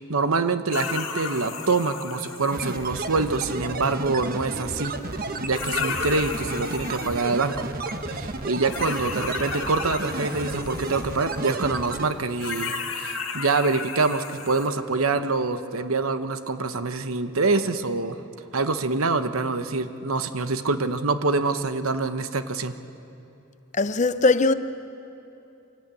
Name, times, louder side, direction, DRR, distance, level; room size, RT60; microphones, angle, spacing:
voice 1, 0.0-4.9 5.4-7.7 8.0-18.2 18.5-22.7, right 3 dB, 85° right, 1.1 m, -25 dB
sound 1, 0.7-3.6 5.1-5.2 5.5-7.6 8.7-11.6 12.4-14.7, left 5 dB, 70° left, 2.1 m, -34 dB
sound 2, 2.5-12.1, right 2 dB, 45° right, 1.2 m, -32 dB
voice 2, 23.7-24.5, left 3 dB, 35° left, 0.6 m, -20 dB
26.0 x 18.0 x 8.5 m
head